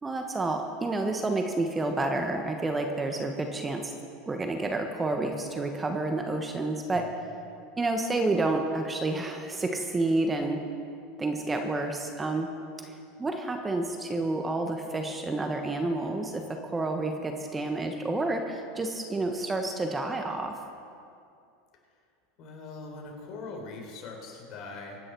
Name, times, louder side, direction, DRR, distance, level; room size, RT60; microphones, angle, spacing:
voice 1, 0.0-3.9 4.3-7.1 7.8-10.6 11.2-12.5 12.8-20.6, right 2 dB, 15° right, 4 dB, 1.3 m, -29 dB
voice 2, 22.4-25.0, left 3 dB, 50° left, 1 dB, 3.9 m, -41 dB
24.0 x 9.6 x 4.7 m, 2.4 s
supercardioid pair, 110°, 0 cm